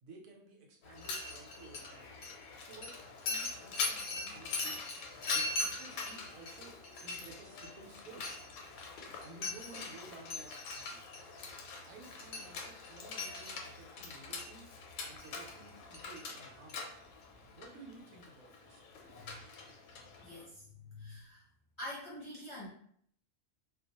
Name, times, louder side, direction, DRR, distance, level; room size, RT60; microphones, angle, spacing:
voice 1, 0.0-2.1 2.6-4.8 5.1-8.3 9.2-11.0 11.8-14.7 15.0-16.8 17.5-18.8, right 3 dB, 80° right, 1 dB, 1.0 m, -54 dB
Mechanisms, 0.8-20.4, left 3 dB, 85° left, 1.0 m, -41 dB
voice 2, 19.1-19.4 20.1-21.5 21.8-22.7, left 1 dB, 25° left, -8 dB, 0.8 m, -46 dB
2.3 x 2.1 x 2.8 m, 0.63 s
omnidirectional pair, 1.4 m